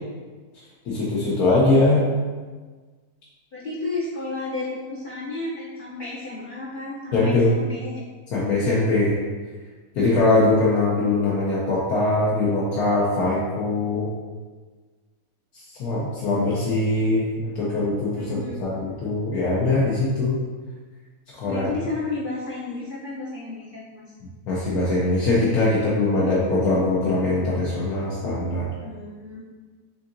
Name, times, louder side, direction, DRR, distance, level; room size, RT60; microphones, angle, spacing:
voice 1, 0.8-2.0 7.1-7.5 8.3-9.2 9.9-14.1 15.5-20.4 21.3-21.6 24.5-28.7, left 2 dB, 80° left, -7 dB, 1.3 m, -22 dB
voice 2, 3.5-8.0 9.9-10.2 18.2-18.6 21.5-24.0 28.8-29.4, left 3 dB, 45° left, -7 dB, 0.7 m, -32 dB
7.0 x 2.8 x 2.6 m, 1.4 s
omnidirectional pair, 1.6 m